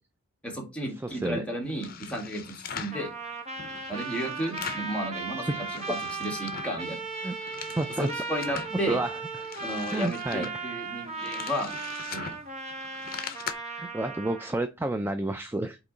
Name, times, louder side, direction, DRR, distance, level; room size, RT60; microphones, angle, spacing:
voice 1, 0.4-2.4 2.7-3.1 3.9-5.4 5.7-7.0 8.0-9.0 9.6-11.7 12.1-12.3, equal, 5° left, -1 dB, 1.8 m, -33 dB
voice 2, 1.0-1.5 5.4-5.7 7.2-7.4 7.7-8.1 8.9-9.2 9.9-10.5 13.7-15.8, right 2 dB, 10° right, 8 dB, 0.4 m, -30 dB
sound 1, 1.6-3.0 3.5-5.0 5.3-6.8 7.2-8.8 9.2-13.5, left 7 dB, 45° left, 0.7 m, -41 dB
Trumpet, 2.9-14.5, right 4 dB, 35° right, 1.1 m, -37 dB
8.2 x 3.0 x 3.9 m, 0.27 s
head